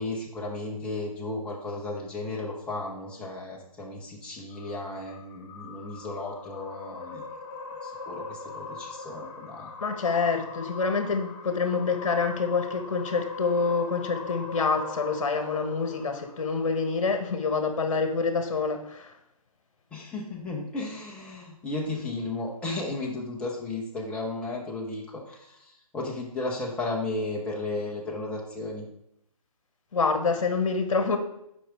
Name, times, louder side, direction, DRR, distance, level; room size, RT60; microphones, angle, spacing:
voice 1, 0.0-7.2 7.8-9.7 19.9-28.9, left 2 dB, 5° left, -2 dB, 0.8 m, -34 dB
sound 1, 4.5-17.0, left 3 dB, 35° left, 1.1 m, -41 dB
voice 2, 9.8-19.1 29.9-31.2, left 4 dB, 55° left, 7 dB, 1.3 m, -27 dB
6.2 x 5.0 x 4.8 m, 0.77 s
figure-of-eight pair, 145°, 19 cm